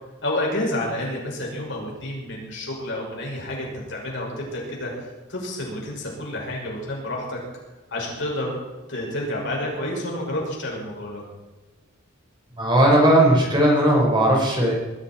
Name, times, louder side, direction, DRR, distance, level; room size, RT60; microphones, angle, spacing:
voice 1, 0.2-7.4 7.9-8.5 8.9-11.2, left 1 dB, 60° left, -2 dB, 6.0 m, -29 dB
voice 2, 12.6-14.7, right 1 dB, 25° right, -2 dB, 5.0 m, -17 dB
21.0 x 13.5 x 4.4 m, 1.1 s
head